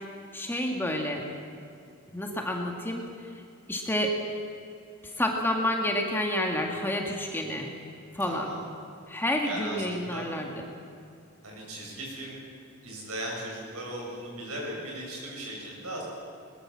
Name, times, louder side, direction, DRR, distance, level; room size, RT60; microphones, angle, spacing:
voice 1, 0.3-1.2 2.1-3.3 3.7-4.2 5.0-7.7 8.1-8.5 9.1-10.7, left 1 dB, 10° left, 1 dB, 1.9 m, -29 dB
voice 2, 8.3-8.6 9.4-10.3 11.4-12.4 12.8-16.0, right 1 dB, 80° right, -2 dB, 8.0 m, -37 dB
21.5 x 21.0 x 7.5 m, 2.5 s
head